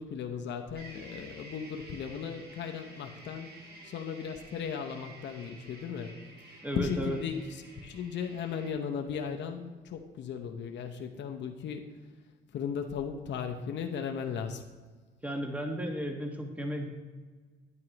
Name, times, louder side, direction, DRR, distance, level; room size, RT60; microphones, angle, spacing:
voice 1, 0.0-3.5 3.8-6.1 6.5-11.8 12.5-14.6, left 7 dB, 65° left, 5 dB, 0.8 m, -36 dB
sound 1, 0.7-8.7, right 2 dB, 50° right, 1.7 m, -51 dB
voice 2, 6.6-7.2 15.2-16.9, equal, 5° right, 3 dB, 1.2 m, -34 dB
9.5 x 9.4 x 2.9 m, 1.4 s
cardioid pair, 90°, 20 cm